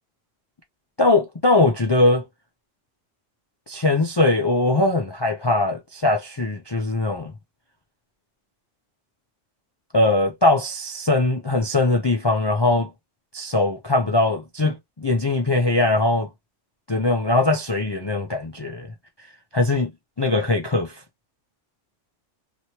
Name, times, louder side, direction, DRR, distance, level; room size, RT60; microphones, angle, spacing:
voice 1, 1.0-2.2 3.7-7.3 9.9-12.9 13.3-16.3 16.9-18.9 19.5-19.9 20.2-21.0, left 2 dB, 35° left, 0.4 m, -21 dB
3.0 x 3.0 x 2.8 m
omnidirectional pair, 1.3 m